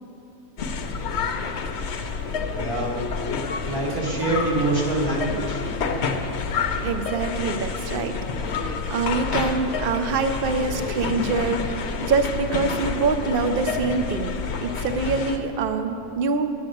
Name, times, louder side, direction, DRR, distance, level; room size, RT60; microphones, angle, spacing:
sound 1, 0.6-15.4, left 5 dB, 55° left, 0.8 m, -28 dB
voice 1, 2.5-3.1 3.7-5.6, right 2 dB, 75° right, -5 dB, 2.0 m, -25 dB
voice 2, 6.8-8.2 8.9-11.6 12.0-14.3 14.6-16.5, right 4 dB, 55° right, 8 dB, 0.6 m, -24 dB
10.0 x 7.2 x 7.7 m, 2.8 s
omnidirectional pair, 1.6 m